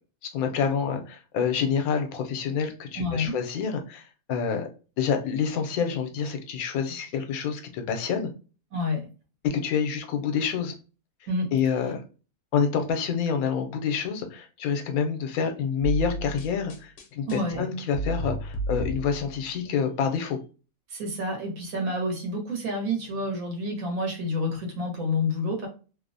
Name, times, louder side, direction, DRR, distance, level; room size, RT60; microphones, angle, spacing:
voice 1, 0.3-4.7 5.0-8.3 9.4-10.7 11.5-12.0 12.5-20.4, left 6 dB, 85° left, 5 dB, 1.0 m, -27 dB
voice 2, 3.0-3.3 8.7-9.1 11.3-11.5 17.3-17.6 20.9-25.7, left 1 dB, 75° right, 1 dB, 1.3 m, -29 dB
sound 1, 15.8-19.5, equal, 60° left, 0.8 m, -32 dB
2.9 x 2.0 x 2.5 m, 0.35 s
omnidirectional pair, 1.5 m